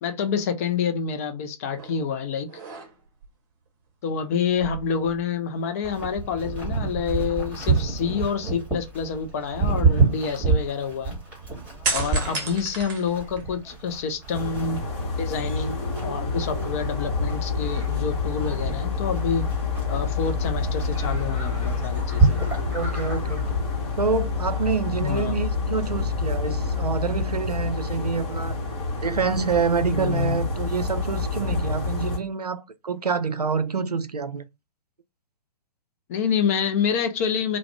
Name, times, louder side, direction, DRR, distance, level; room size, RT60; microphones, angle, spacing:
voice 1, 0.0-2.5 4.0-11.2 11.9-14.9 15.2-19.5 19.9-22.4 25.0-25.4 29.9-30.4 36.1-37.6, left 6 dB, 25° left, 0.3 m, -27 dB
sound 1, 1.8-2.0 2.5-3.3 4.4-5.7 6.0-6.2 11.8-13.7 14.2-15.1, right 3 dB, 30° right, 0.7 m, -33 dB
Livestock farm animals working animals, 5.8-23.5, right 4 dB, 5° right, 1.1 m, -28 dB
sound 2, 14.3-32.2, left 4 dB, 45° left, 1.1 m, -28 dB
voice 2, 22.7-23.4 24.0-28.6 29.0-34.4, right 5 dB, 85° right, 0.4 m, -27 dB
2.3 x 2.0 x 3.2 m
figure-of-eight pair, 120°, 20 cm